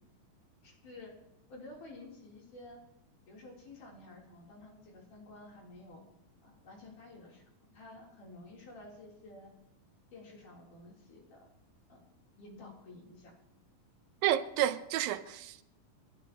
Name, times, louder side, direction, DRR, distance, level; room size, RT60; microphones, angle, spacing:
voice 1, 0.6-1.1 1.5-2.8 3.3-6.0 6.4-9.5 10.1-11.5 11.9-12.0 12.4-13.3, left 2 dB, 60° left, 5.0 m, -51 dB
voice 2, 14.2-15.6, right 12 dB, 80° right, 2.4 m, -30 dB
29.5 x 12.5 x 3.0 m
omnidirectional pair, 4.2 m